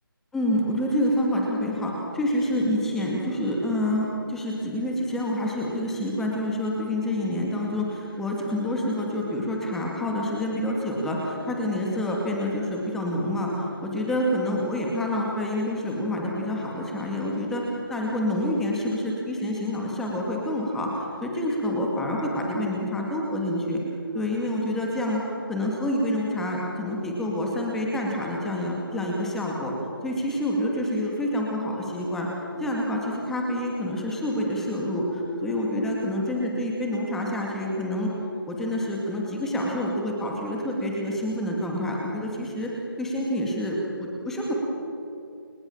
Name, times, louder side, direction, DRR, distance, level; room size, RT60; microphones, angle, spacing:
voice 1, 0.3-23.8 24.1-25.2 25.5-29.7 30.0-32.3 32.6-38.1 38.5-42.7 43.0-44.5, left 1 dB, 5° left, -2 dB, 2.3 m, -27 dB
30.0 x 26.5 x 7.3 m, 2.7 s
figure-of-eight pair, 170°, 12 cm